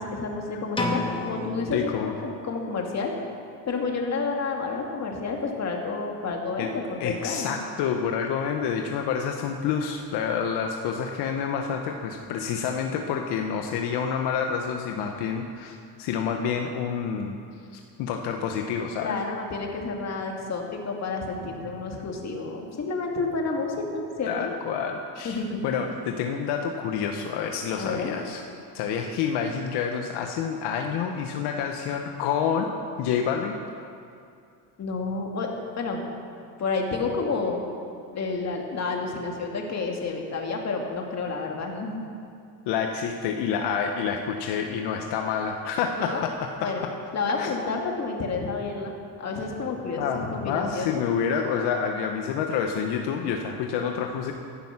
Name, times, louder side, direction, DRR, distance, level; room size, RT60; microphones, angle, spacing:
voice 1, 0.0-3.1 3.7-7.6 19.0-24.5 25.2-25.8 27.8-28.2 34.8-36.0 36.6-37.6 38.1-42.1 45.9-46.2 46.6-46.8 47.1-48.9 49.2-51.1, left 4 dB, 40° left, 1 dB, 2.5 m, -30 dB
sound 1, 0.8-2.6, left 2 dB, 10° left, 1.7 m, -31 dB
voice 2, 1.7-2.1 6.6-6.7 7.0-17.4 17.7-19.2 24.3-28.4 28.7-32.7 33.0-33.6 42.7-46.9 47.4-47.5 50.0-54.3, left 7 dB, 75° left, 3 dB, 1.2 m, -28 dB
15.5 x 10.5 x 6.0 m, 2.5 s
supercardioid pair, 100°, 41 cm